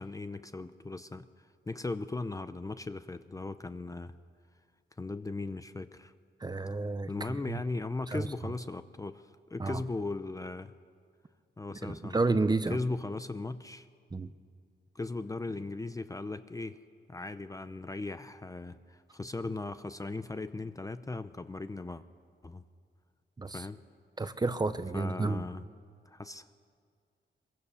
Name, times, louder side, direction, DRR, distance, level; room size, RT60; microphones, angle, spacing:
voice 1, 0.0-4.1 5.0-6.1 7.1-10.7 11.6-12.2 12.7-13.9 14.9-16.8 17.1-22.0 22.4-22.6 23.5-23.8 24.9-25.6 26.1-26.5, left 3 dB, 15° left, 11 dB, 0.6 m, -38 dB
voice 2, 6.4-7.6 8.1-8.3 9.6-9.8 11.8-12.8 14.1-14.3 23.4-23.7 24.2-25.4, right 3 dB, 20° right, 12 dB, 0.7 m, -31 dB
24.5 x 23.0 x 7.0 m, 2.2 s
wide cardioid pair, 165°, 19 cm